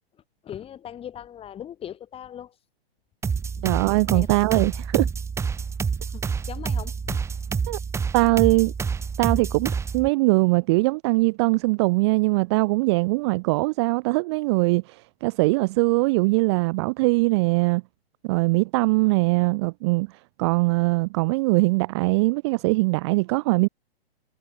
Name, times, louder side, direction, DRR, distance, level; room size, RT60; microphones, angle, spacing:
voice 1, 0.4-2.6 3.6-3.7 4.1-4.3 6.1-7.2, left 10 dB, 20° left, 2.0 m, -39 dB
sound 1, 3.2-10.1, right 6 dB, 10° right, 0.9 m, -28 dB
voice 2, 3.6-5.1 7.7-7.8 8.1-8.7 9.2-17.8 18.2-20.1 20.4-23.7, right 25 dB, 30° right, 0.4 m, -21 dB
hypercardioid pair, 130°, 31 cm